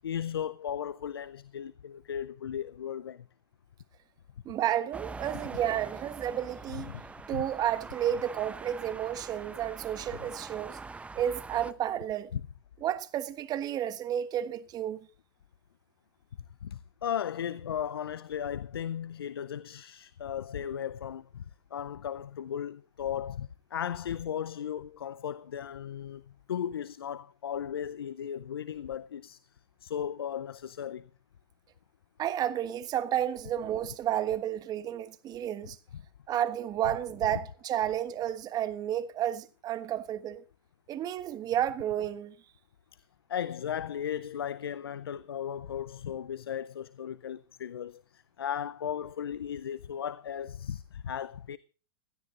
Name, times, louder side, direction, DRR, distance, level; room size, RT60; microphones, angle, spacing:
voice 1, 0.0-3.3 6.7-7.1 7.3-7.4 12.3-12.4 16.6-26.2 26.5-29.4 29.8-31.1 35.9-36.0 42.9-43.0 43.3-51.6, left 9 dB, 85° left, 0.6 m, -36 dB
voice 2, 4.4-6.9 7.3-10.8 11.1-12.3 12.8-15.1 32.2-35.8 36.3-40.4 40.9-42.3, right 11 dB, 30° right, 1.4 m, -31 dB
sound 1, 4.9-11.7, right 4 dB, 10° right, 0.8 m, -44 dB
16.5 x 12.5 x 3.8 m
hypercardioid pair, 110°, 12 cm